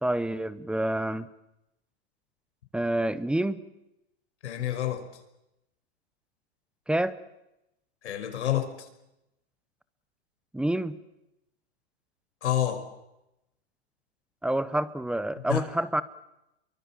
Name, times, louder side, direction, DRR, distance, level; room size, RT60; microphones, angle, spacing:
voice 1, 0.0-1.3 2.7-3.6 6.9-7.2 10.5-11.0 14.4-16.0, right 1 dB, 5° right, 16 dB, 0.9 m, -28 dB
voice 2, 4.4-5.0 8.0-8.9 12.4-12.8 15.5-15.6, left 12 dB, 85° left, 7 dB, 5.3 m, -28 dB
29.0 x 23.5 x 7.4 m, 0.89 s
hypercardioid pair, 140°, 33 cm